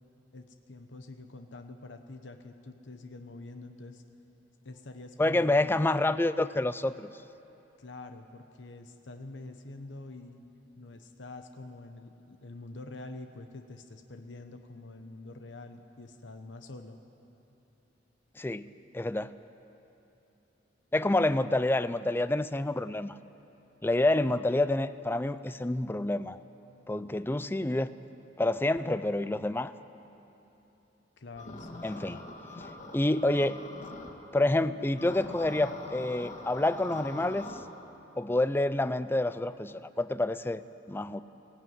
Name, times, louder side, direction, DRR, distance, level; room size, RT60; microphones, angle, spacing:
voice 1, 0.3-4.0 4.6-5.8 7.8-10.4 10.8-17.0 31.2-32.2, left 2 dB, 75° left, 7 dB, 1.0 m, -46 dB
voice 2, 5.2-7.1 18.4-19.4 20.9-23.2 23.8-26.4 26.9-27.9 28.4-29.7 31.8-32.2 32.6-33.6 34.3-37.5 38.2-41.2, left 2 dB, 10° left, 14 dB, 0.4 m, -28 dB
sound 1, 31.4-34.1 35.0-37.6, left 2 dB, 40° left, 2.0 m, -43 dB
17.0 x 16.5 x 9.3 m, 3.0 s
head